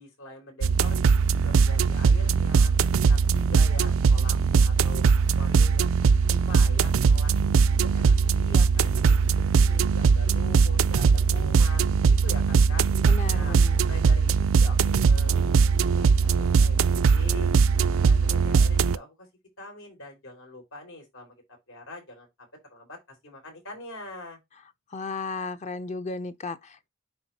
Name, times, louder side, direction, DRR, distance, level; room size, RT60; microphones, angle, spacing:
voice 1, 0.0-5.9 6.3-7.3 7.6-12.9 13.3-13.6 13.9-17.6 18.0-19.3 19.6-21.4 21.7-24.4, left 1 dB, 85° left, 4.1 m, -44 dB
sound 1, 0.6-19.0, right 5 dB, 85° right, 0.4 m, -20 dB
voice 2, 13.1-13.8 24.9-26.9, left 3 dB, 35° left, 0.6 m, -34 dB
9.5 x 4.0 x 2.8 m
head